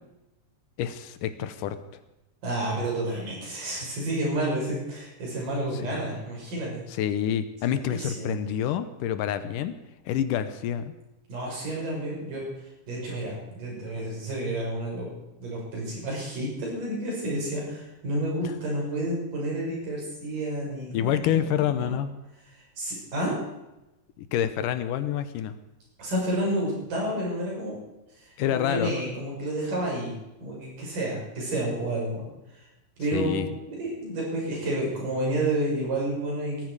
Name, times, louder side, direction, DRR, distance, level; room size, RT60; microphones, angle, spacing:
voice 1, 0.8-1.8 6.1-6.2 6.9-9.7 10.1-10.9 20.9-22.1 24.2-25.6 28.4-28.9 33.1-33.5, left 10 dB, 75° left, 11 dB, 2.3 m, -27 dB
voice 2, 2.4-6.8 7.7-8.3 11.3-15.1 15.4-22.0 22.5-23.4 26.0-27.8 28.1-30.1 30.4-32.2 32.5-32.7 33.0-36.6, right 1 dB, 70° right, -3 dB, 7.8 m, -30 dB
19.0 x 13.5 x 4.9 m, 0.95 s
omnidirectional pair, 3.9 m